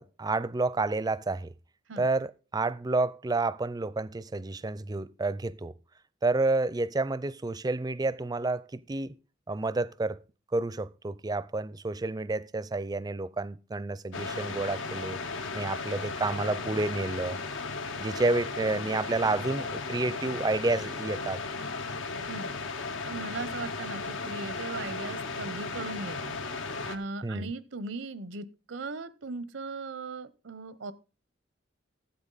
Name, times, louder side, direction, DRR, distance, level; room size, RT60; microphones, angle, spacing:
voice 1, 0.0-1.5 2.0-5.7 6.2-9.1 9.5-10.2 10.5-15.2 15.5-17.4 18.0-21.4 27.2-27.5, right 3 dB, 20° right, 0.4 m, -30 dB
sound 1, 14.1-27.0, left 4 dB, 85° left, 1.0 m, -36 dB
voice 2, 23.0-30.9, right 3 dB, 85° right, 0.8 m, -38 dB
13.0 x 7.8 x 3.9 m
head